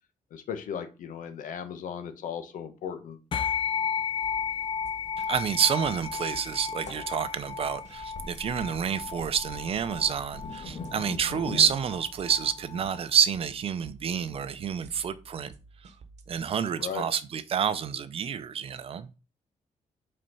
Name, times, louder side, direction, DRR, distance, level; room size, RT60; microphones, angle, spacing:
voice 1, 0.3-3.2 16.8-17.0, left 8 dB, 90° left, 1.2 m, -36 dB
sound 1, 3.3-13.0, left 7 dB, 40° left, 0.4 m, -34 dB
sound 2, 4.2-16.4, right 4 dB, 60° right, 1.0 m, -52 dB
sound 3, 4.3-4.4 4.7-4.8 5.0-11.7, left 3 dB, 60° left, 1.6 m, -42 dB
voice 2, 5.2-15.5 16.3-19.1, right 8 dB, 45° right, 0.6 m, -28 dB
5.3 x 4.3 x 5.6 m
cardioid pair, 150°, 13 cm